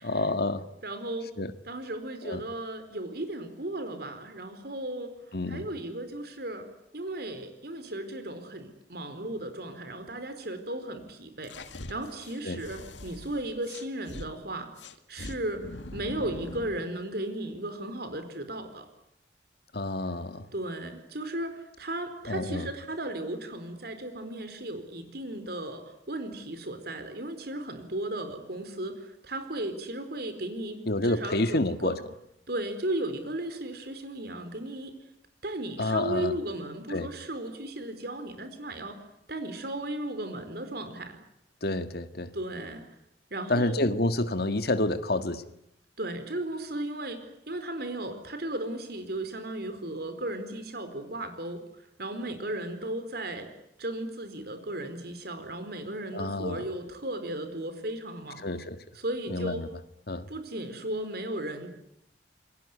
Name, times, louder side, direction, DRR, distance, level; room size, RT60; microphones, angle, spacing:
voice 1, 0.0-0.6 1.4-1.5 2.2-2.4 5.3-5.7 12.5-12.6 19.7-20.5 22.3-22.7 30.9-32.0 35.8-36.4 36.9-37.1 41.6-42.3 43.5-45.4 56.1-56.6 58.4-58.8 59.3-59.7 60.1-60.3, left 2 dB, 60° left, 10 dB, 1.7 m, -28 dB
voice 2, 0.8-1.3 1.6-5.1 5.5-6.7 6.9-11.5 11.9-14.7 15.1-18.9 20.5-32.0 32.5-34.9 35.4-39.0 39.3-41.2 42.3-42.8 43.3-43.8 46.0-51.6 52.0-53.5 53.8-58.4 58.9-59.6 60.3-61.7, right 1 dB, 60° right, 9 dB, 4.4 m, -35 dB
sound 1, 11.4-14.3 14.8-16.8, left 2 dB, 85° left, 2.1 m, -42 dB
28.0 x 21.5 x 9.7 m, 0.77 s
head